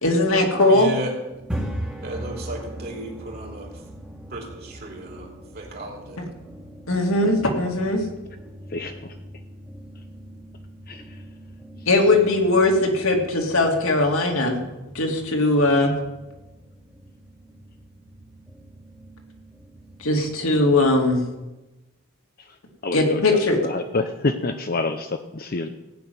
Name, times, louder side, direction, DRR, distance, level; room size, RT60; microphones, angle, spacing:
voice 1, 0.0-1.0 6.2-6.3 6.9-8.0 11.9-14.6 14.9-15.9 20.0-21.2 22.9-23.6, left 2 dB, 65° left, 1 dB, 2.5 m, -19 dB
voice 2, 0.7-1.1 2.0-3.7 4.3-6.2, right 1 dB, 45° right, 1 dB, 2.9 m, -35 dB
sound 1, 1.3-21.2, right 1 dB, 5° right, 1.6 m, -40 dB
voice 3, 8.7-9.2 10.9-11.2 11.8-11.9 22.4-22.6 22.8-25.7, left 3 dB, 40° left, 7 dB, 0.6 m, -28 dB
16.0 x 6.2 x 9.4 m, 1.0 s
head